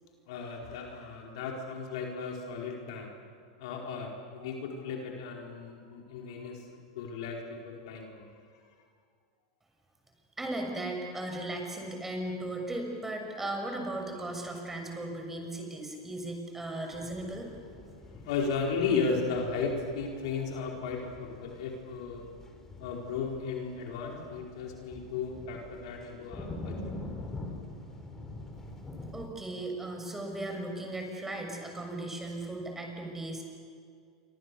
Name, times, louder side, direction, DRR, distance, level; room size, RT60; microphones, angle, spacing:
voice 1, 0.3-3.1 3.6-8.3 18.2-22.3 22.8-26.8, left 5 dB, 65° left, 0 dB, 4.6 m, -35 dB
voice 2, 10.4-17.5 29.1-33.4, right 1 dB, 10° right, 2 dB, 6.5 m, -37 dB
sound 1, 16.9-29.3, left 2 dB, 15° left, 4.3 m, -45 dB
28.5 x 25.0 x 7.0 m, 2.2 s
hypercardioid pair, 100°, 3 cm